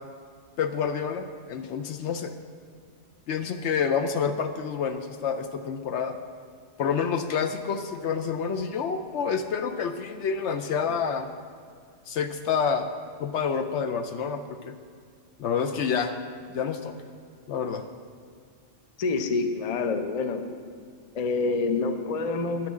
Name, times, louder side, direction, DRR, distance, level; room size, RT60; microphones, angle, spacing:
voice 1, 0.6-2.4 3.3-6.2 6.8-11.3 12.1-12.9 13.2-14.7 15.4-16.2 16.5-16.9 17.5-17.8, left 6 dB, 65° left, 8 dB, 0.8 m, -28 dB
voice 2, 19.0-20.4 21.1-22.7, left 3 dB, 45° left, 7 dB, 0.5 m, -27 dB
9.5 x 5.9 x 7.2 m, 2.1 s
omnidirectional pair, 1.4 m